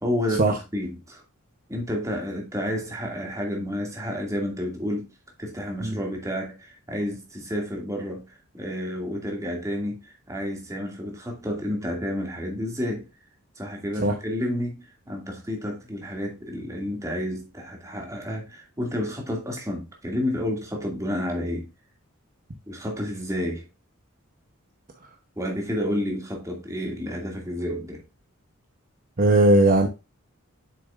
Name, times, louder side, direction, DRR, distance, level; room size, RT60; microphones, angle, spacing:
voice 1, 0.0-1.2 1.7-5.1 5.4-13.1 13.6-21.7 22.7-23.7 25.4-28.0, left 1 dB, 15° right, 2.3 m, -30 dB
voice 2, 29.2-29.9, right 2 dB, 40° right, 0.9 m, -17 dB
7.8 x 6.5 x 2.5 m
head